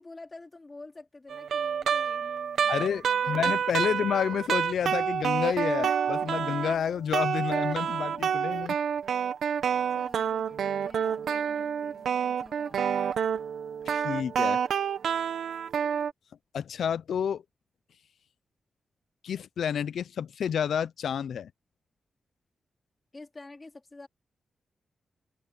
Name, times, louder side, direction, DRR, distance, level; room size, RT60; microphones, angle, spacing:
voice 1, 0.0-3.4 3.9-4.0 9.9-13.2 23.1-24.1, left 2 dB, 20° left, 2.6 m, -49 dB
sound 1, 1.3-6.8 7.1-16.1, right 7 dB, 85° right, 0.9 m, -28 dB
voice 2, 2.7-8.8 13.9-14.6 16.5-17.4 19.2-21.5, left 8 dB, 80° left, 0.5 m, -30 dB
wide cardioid pair, 165°, 0 cm